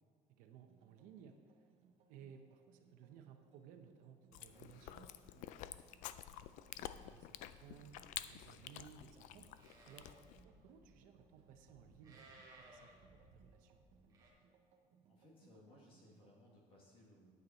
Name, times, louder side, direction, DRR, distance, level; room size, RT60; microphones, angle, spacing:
voice 1, 0.3-1.4 2.1-6.2 6.8-9.5 9.9-10.1 10.4-13.9, right 8 dB, 75° right, 5 dB, 0.8 m, -60 dB
sound 1, 0.5-16.3, right 5 dB, 45° right, 0.9 m, -71 dB
Chewing mastication, 4.3-10.4, left 12 dB, 65° left, 0.4 m, -50 dB
Livestock farm animals working animals, 7.7-14.3, right 2 dB, 25° right, 1.5 m, -64 dB
voice 2, 15.1-17.3, left 1 dB, 40° left, -2 dB, 1.8 m, -63 dB
9.4 x 8.0 x 4.2 m, 2.1 s
cardioid pair, 165°, 14 cm